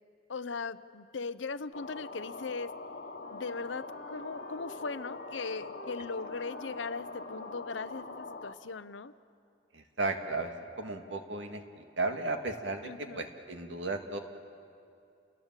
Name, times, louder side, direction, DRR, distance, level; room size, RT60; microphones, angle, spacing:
voice 1, 0.3-2.7 3.3-9.1 12.8-13.3, left 4 dB, 90° left, 14 dB, 0.7 m, -39 dB
sound 1, 1.7-8.5, left 3 dB, 60° left, 1.3 m, -43 dB
Wind instrument woodwind instrument, 3.2-8.2, equal, 40° right, 2.3 m, -53 dB
voice 2, 9.7-14.2, right 2 dB, 85° right, 5 dB, 2.0 m, -35 dB
29.0 x 20.5 x 7.5 m, 2.6 s
head